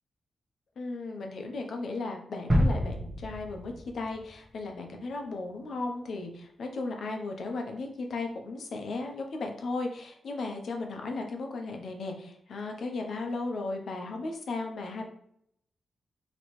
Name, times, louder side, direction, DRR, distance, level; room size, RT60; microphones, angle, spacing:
voice 1, 0.8-15.0, left 3 dB, 65° left, 2 dB, 0.7 m, -36 dB
sound 1, 2.5-4.4 4.8-4.9, equal, 25° right, 1.0 m, -28 dB
4.3 x 3.0 x 3.1 m, 0.70 s
wide cardioid pair, 135°, 0 cm